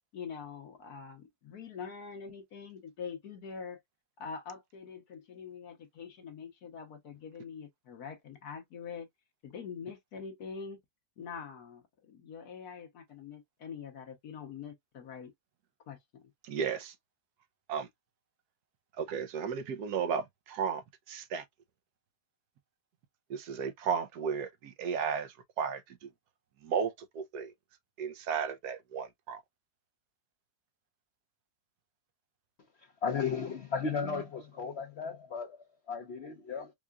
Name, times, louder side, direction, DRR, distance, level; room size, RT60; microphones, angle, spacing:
voice 1, 0.1-3.8 4.2-9.1 9.4-10.8 11.2-15.3 15.9-16.2, left 6 dB, 70° left, 1.4 m, -44 dB
voice 2, 16.4-16.9 17.7-17.9 19.0-21.4 23.3-26.1 26.6-27.5 28.0-29.4, right 6 dB, 75° right, 1.2 m, -34 dB
voice 3, 33.0-36.7, left 5 dB, 50° left, 0.9 m, -35 dB
4.7 x 2.4 x 2.2 m
omnidirectional pair, 1.8 m